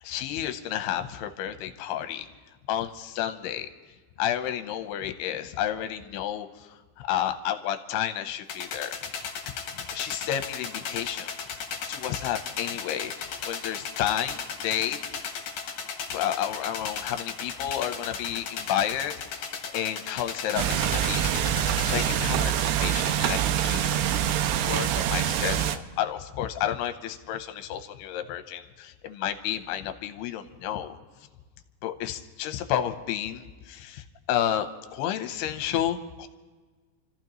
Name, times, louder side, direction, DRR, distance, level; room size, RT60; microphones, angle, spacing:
voice 1, 0.0-2.3 2.7-3.7 4.2-9.0 9.9-11.3 11.9-15.4 16.1-21.3 21.8-24.0 24.6-31.0 31.8-36.3, left 11 dB, 75° left, 8 dB, 2.7 m, -31 dB
sound 1, 8.5-22.1, left 6 dB, 60° left, 2.7 m, -36 dB
sound 2, 20.6-25.8, right 10 dB, 80° right, 2.5 m, -25 dB
28.5 x 15.0 x 3.1 m, 1.4 s
omnidirectional pair, 5.1 m